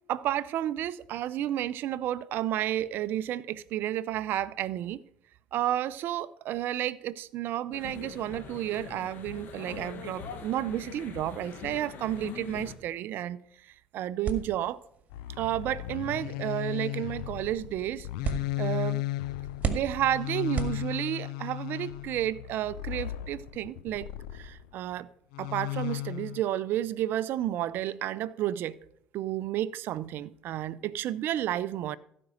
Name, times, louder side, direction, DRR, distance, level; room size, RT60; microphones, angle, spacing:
voice 1, 0.1-5.0 5.5-13.4 13.9-14.8 15.4-18.1 18.6-19.0 19.6-24.1 24.3-25.1 25.4-28.8 29.1-32.0, right 12 dB, 65° right, 0.6 m, -31 dB
sound 1, 7.7-12.7, left 7 dB, 60° left, 1.7 m, -42 dB
sound 2, 14.2-21.4, right 5 dB, 40° right, 1.8 m, -38 dB
sound 3, 15.1-24.7 25.3-26.4, left 15 dB, 85° left, 0.5 m, -35 dB
15.5 x 5.3 x 6.4 m
supercardioid pair, 80°, 4 cm